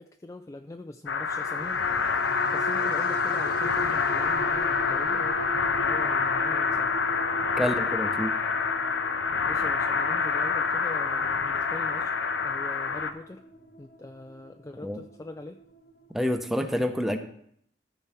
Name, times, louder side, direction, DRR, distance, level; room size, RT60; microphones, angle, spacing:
voice 1, 0.0-5.4 5.7-6.9 7.5-7.8 9.5-12.1 12.4-13.4 13.8-15.6, left 2 dB, 15° left, 6 dB, 0.3 m, -42 dB
sound 1, 1.1-13.1, left 5 dB, 80° left, 0.7 m, -27 dB
sound 2, 1.3-16.0 16.4-16.5, equal, 55° left, 1.0 m, -39 dB
voice 2, 7.6-8.4 14.8-15.0 16.1-17.2, equal, ahead, 6 dB, 0.8 m, -28 dB
13.5 x 4.6 x 5.7 m, 0.68 s
head